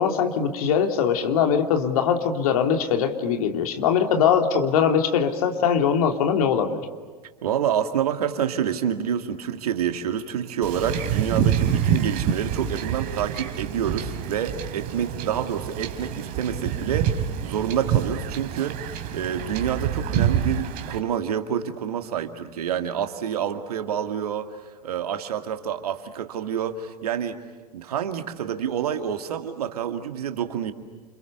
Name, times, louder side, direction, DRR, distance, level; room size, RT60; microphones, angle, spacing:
voice 1, 0.0-6.8, left 7 dB, 60° left, 4 dB, 3.0 m, -21 dB
voice 2, 7.4-27.4 27.7-30.7, right 9 dB, 65° right, 7 dB, 2.3 m, -28 dB
Wind / Ocean / Boat Water vehicle, 10.6-21.0, right 8 dB, 45° right, 2.9 m, -27 dB
30.0 x 28.5 x 6.9 m, 1.4 s
figure-of-eight pair, 85°, 21 cm